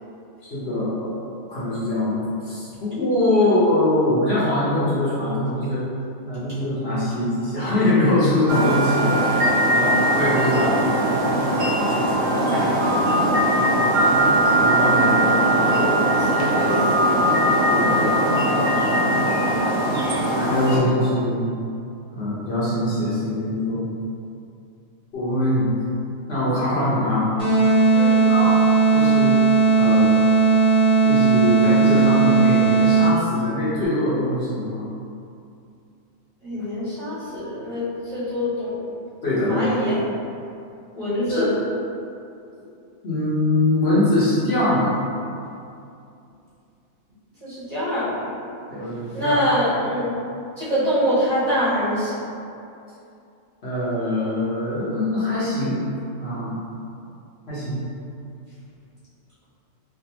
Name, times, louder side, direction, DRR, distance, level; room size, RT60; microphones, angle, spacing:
voice 1, 0.4-5.8 6.2-10.9 14.6-15.6 17.7-18.3 20.3-21.4 22.1-23.8 25.1-25.7 26.3-27.3 28.3-28.5 28.9-29.3 29.8-30.2 31.0-34.8 39.2-39.6 41.3-41.5 42.5-42.6 43.0-44.9 48.7-49.4 53.6-55.8 56.2-56.6 57.5-57.8, left 1 dB, 55° left, -10 dB, 1.1 m, -23 dB
sound 1, 8.5-20.8, right 1 dB, 75° right, 1.0 m, -20 dB
voice 2, 9.6-10.1 14.8-15.2 15.6-15.8 16.2-17.0 27.9-28.2 36.4-38.9 39.4-40.0 40.9-41.5 47.4-48.3 49.1-50.1 50.6-52.3, equal, 30° right, -13 dB, 1.6 m, -25 dB
sound 2, 27.4-33.4, right 4 dB, 5° left, 0.9 m, -17 dB
3.4 x 2.5 x 2.8 m, 2.6 s
omnidirectional pair, 1.4 m